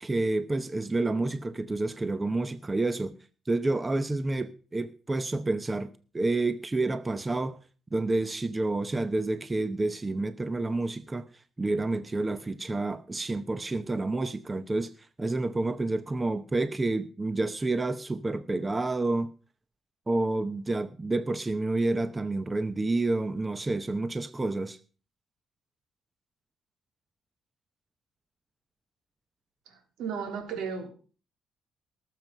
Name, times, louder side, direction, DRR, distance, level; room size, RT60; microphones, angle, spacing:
voice 1, 0.0-3.2 3.5-7.6 7.9-11.3 11.6-14.9 15.2-19.3 20.1-24.8, right 2 dB, 20° right, 0.8 m, -29 dB
voice 2, 30.0-30.9, right 6 dB, 85° right, 3.2 m, -33 dB
18.5 x 7.6 x 5.3 m
cardioid pair, 90°, 0 cm